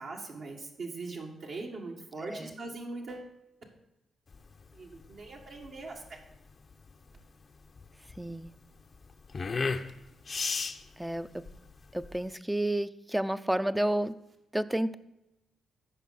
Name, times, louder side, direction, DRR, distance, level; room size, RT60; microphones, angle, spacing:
voice 1, 0.0-3.3 4.7-6.2, right 3 dB, 70° right, -1 dB, 1.7 m, -41 dB
voice 2, 2.2-2.5 8.2-8.5 11.0-11.4 11.9-14.2 14.5-14.9, right 1 dB, 5° right, 14 dB, 0.5 m, -30 dB
sound 1, 4.3-12.3, left 4 dB, 45° left, 0.6 m, -37 dB
14.0 x 5.3 x 4.1 m, 0.92 s
cardioid pair, 60°, 0 cm